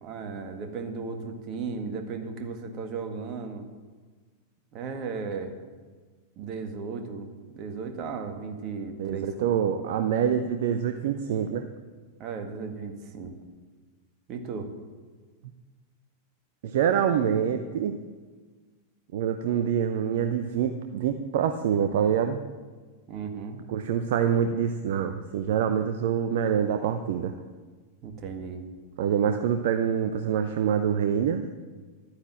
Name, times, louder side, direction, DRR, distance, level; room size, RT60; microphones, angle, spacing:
voice 1, 0.0-3.7 4.7-5.5 6.4-9.7 12.2-13.3 14.3-14.7 23.1-23.6 28.0-28.7, right 5 dB, 35° right, 5 dB, 1.9 m, -35 dB
voice 2, 9.0-11.7 16.6-18.0 19.1-22.4 23.7-27.3 29.0-31.4, right 8 dB, 55° right, 7 dB, 0.7 m, -26 dB
12.5 x 9.7 x 7.5 m, 1.4 s
figure-of-eight pair, 90°, 0 cm